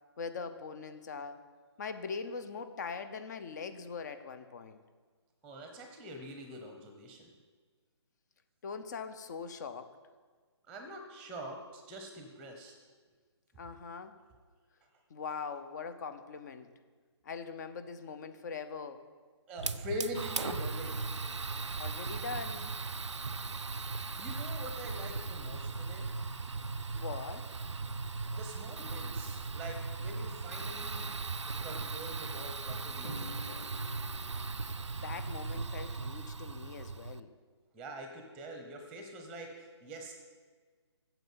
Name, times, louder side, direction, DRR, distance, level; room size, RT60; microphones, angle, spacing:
voice 1, 0.2-1.4 1.8-4.8 8.6-10.0 13.5-14.2 15.1-16.7 17.2-19.1 21.8-22.8 26.9-27.5 35.0-37.3, left 5 dB, 40° left, 11 dB, 0.8 m, -41 dB
voice 2, 5.4-7.3 10.7-12.7 19.5-21.1 24.2-26.1 28.3-31.1 31.6-33.7 37.1-37.2 37.7-40.1, equal, 5° right, 4 dB, 0.9 m, -44 dB
Fire, 19.6-37.2, right 4 dB, 85° right, 0.6 m, -38 dB
Drum, 33.0-35.2, equal, 75° left, 2.9 m, -48 dB
9.1 x 7.1 x 7.6 m, 1.5 s
figure-of-eight pair, 145°, 15 cm